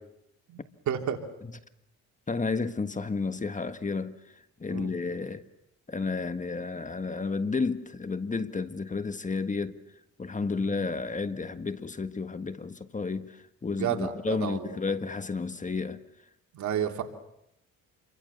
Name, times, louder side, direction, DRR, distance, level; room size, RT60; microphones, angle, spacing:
voice 1, 0.5-1.2 4.7-4.9 10.6-10.7 13.7-14.7 16.5-17.0, right 9 dB, 70° right, 3.1 m, -31 dB
voice 2, 2.3-5.5 5.9-9.8 10.2-16.0, left 4 dB, 25° left, 1.5 m, -32 dB
29.0 x 24.0 x 7.0 m
cardioid pair, 90°, 30 cm